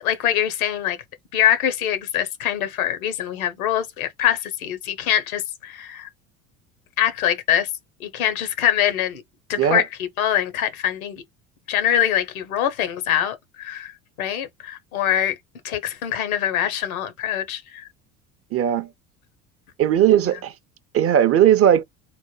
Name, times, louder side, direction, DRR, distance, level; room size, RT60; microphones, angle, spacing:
voice 1, 0.0-1.0 1.3-6.1 7.0-7.7 8.0-9.2 9.5-11.2 11.7-13.9 14.2-15.4 15.6-17.8, left 10 dB, 80° left, 0.9 m, -23 dB
voice 2, 18.5-18.9 19.8-20.5 20.9-21.8, right 10 dB, 35° right, 0.5 m, -17 dB
3.4 x 2.1 x 3.1 m
hypercardioid pair, 70°, 42 cm